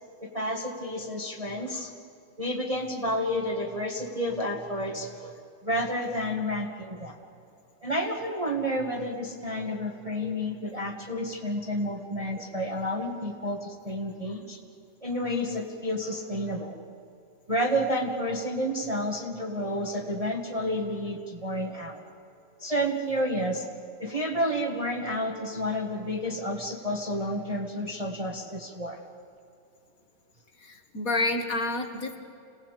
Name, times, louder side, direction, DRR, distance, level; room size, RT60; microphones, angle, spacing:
voice 1, 0.2-1.9 2.4-5.3 5.6-7.2 7.8-14.6 15.0-16.8 17.5-22.0 22.6-23.7 24.0-29.0, equal, 20° right, 0 dB, 1.6 m, -30 dB
voice 2, 30.6-32.2, left 2 dB, 45° left, 6 dB, 2.1 m, -29 dB
26.5 x 18.0 x 8.3 m, 2.6 s
omnidirectional pair, 2.2 m